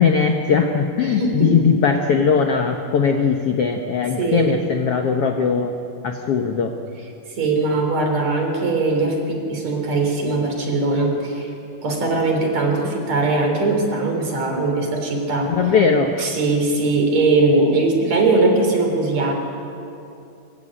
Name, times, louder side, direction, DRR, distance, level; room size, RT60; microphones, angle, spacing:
voice 1, 0.0-5.7 6.0-6.7 15.5-16.3, left 6 dB, 60° left, 4 dB, 1.6 m, -19 dB
voice 2, 1.0-1.7 4.2-4.5 7.4-11.5 11.8-15.5 16.2-19.3, right 3 dB, 50° right, 3 dB, 4.8 m, -20 dB
24.0 x 22.5 x 8.8 m, 2.6 s
omnidirectional pair, 4.1 m